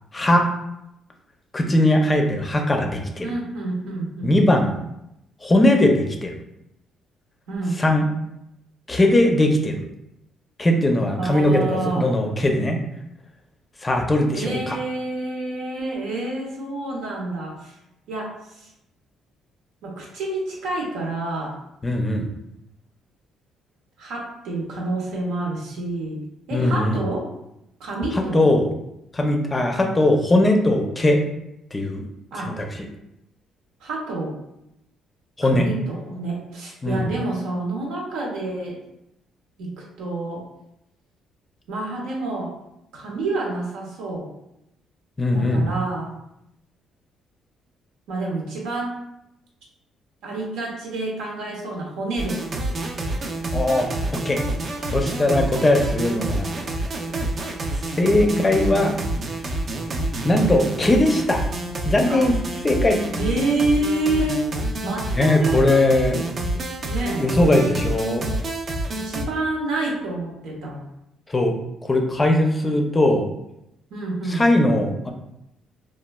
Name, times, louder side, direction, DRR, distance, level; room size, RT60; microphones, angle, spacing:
voice 1, 0.1-0.5 1.5-3.3 4.2-4.7 5.4-6.3 7.8-8.1 8.9-9.8 10.6-12.8 13.8-14.8 21.8-22.3 26.5-27.0 28.1-28.7 29.1-31.2 31.7-32.0 32.4-32.7 35.4-35.7 36.8-37.0 45.2-45.7 53.5-54.4 54.9-56.5 57.9-58.9 60.2-61.4 61.8-62.3 62.6-63.0 65.1-66.2 67.2-68.3 71.3-71.5 71.8-73.3 74.3-75.1, left 1 dB, 20° left, 3 dB, 0.4 m, -19 dB
voice 2, 3.2-4.4 7.5-7.8 11.1-12.0 14.3-17.7 18.1-18.7 19.8-21.5 24.0-26.2 26.5-27.3 27.8-28.5 32.3-32.6 33.8-34.3 35.4-38.8 39.6-40.4 41.7-42.5 42.9-44.3 45.3-46.1 48.1-48.9 50.2-52.4 58.2-58.9 62.1-62.2 63.2-64.5 64.8-66.2 66.8-67.3 68.9-70.8 73.9-74.4, right 2 dB, 90° right, -2 dB, 0.8 m, -28 dB
sound 1, 52.2-69.2, right 1 dB, 45° right, 0.4 m, -28 dB
3.0 x 2.2 x 2.2 m, 0.84 s
cardioid pair, 95°, 0 cm